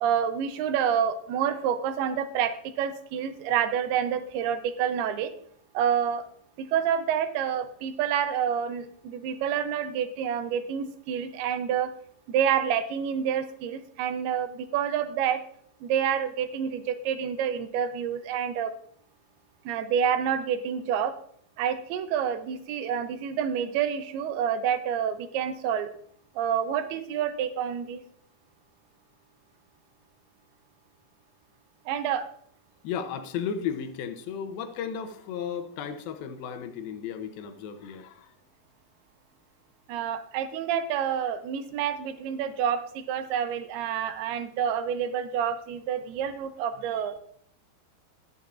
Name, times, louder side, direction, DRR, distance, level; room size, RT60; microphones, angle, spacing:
voice 1, 0.0-5.3 5.7-6.2 6.6-11.9 12.3-15.4 15.8-18.7 19.7-21.1 21.6-25.9 26.4-28.0 31.9-32.3 39.9-47.2, right 8 dB, 85° right, 9 dB, 2.7 m, -28 dB
voice 2, 32.8-38.3, left 7 dB, 80° left, 8 dB, 2.5 m, -34 dB
20.5 x 7.0 x 2.5 m, 0.63 s
omnidirectional pair, 4.5 m